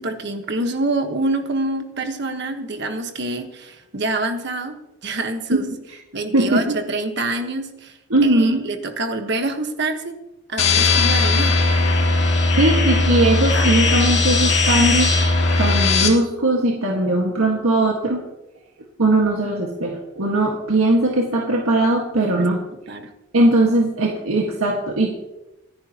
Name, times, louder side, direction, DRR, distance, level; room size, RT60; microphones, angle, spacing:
voice 1, 0.0-4.7 5.0-5.7 6.1-8.0 8.2-10.1 10.5-11.6 22.2-22.5 22.9-23.1, right 2 dB, 50° right, 5 dB, 1.4 m, -26 dB
voice 2, 6.3-6.8 8.1-8.6 10.8-10.9 12.3-15.1 15.6-18.2 19.0-22.6 23.3-25.1, right 1 dB, 75° right, -1 dB, 1.8 m, -19 dB
sound 1, 10.6-16.1, left 3 dB, 55° left, 2.6 m, -18 dB
25.5 x 10.0 x 3.0 m, 0.95 s
head